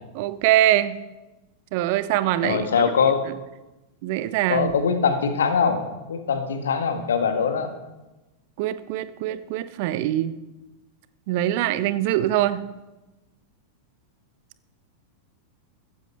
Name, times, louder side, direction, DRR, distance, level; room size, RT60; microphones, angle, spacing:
voice 1, 0.1-1.0 1.7-2.7 4.0-4.8 8.6-10.3 11.3-12.6, right 13 dB, 50° right, 14 dB, 0.8 m, -23 dB
voice 2, 2.4-3.2 4.5-5.8 6.1-7.7, left 6 dB, 65° left, 7 dB, 1.6 m, -22 dB
15.0 x 15.0 x 3.4 m, 1.0 s
figure-of-eight pair, 90°, 0 cm